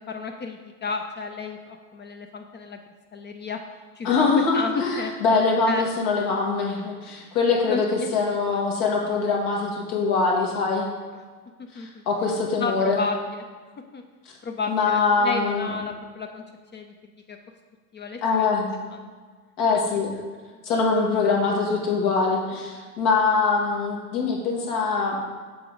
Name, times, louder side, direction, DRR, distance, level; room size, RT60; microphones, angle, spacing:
voice 1, 0.0-2.8 3.1-3.6 4.0-5.1 5.7-5.9 7.1-7.2 7.6-8.6 11.7-12.0 12.6-13.4 13.9-14.0 14.4-16.4 16.7-16.9 17.3-17.4 17.9-18.5 18.9-19.1 19.7-20.0, left 4 dB, 25° left, 5 dB, 0.4 m, -32 dB
voice 2, 4.0-7.8 8.1-10.9 11.7-13.0 14.7-15.7 18.2-18.7 19.6-20.1 20.6-25.2, left 4 dB, 70° left, -1 dB, 2.0 m, -23 dB
7.8 x 5.0 x 3.9 m, 1.5 s
hypercardioid pair, 95°, 47 cm